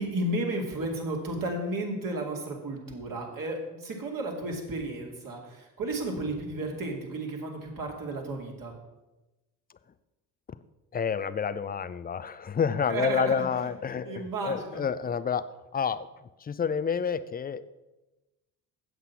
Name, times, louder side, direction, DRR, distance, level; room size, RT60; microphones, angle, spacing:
voice 1, 0.0-8.8 12.9-14.9, right 2 dB, 45° right, 0 dB, 2.7 m, -33 dB
voice 2, 10.9-15.4 15.7-16.1 16.4-17.7, left 6 dB, 20° left, 15 dB, 0.5 m, -29 dB
8.0 x 7.8 x 5.8 m, 1.0 s
hypercardioid pair, 50°, 46 cm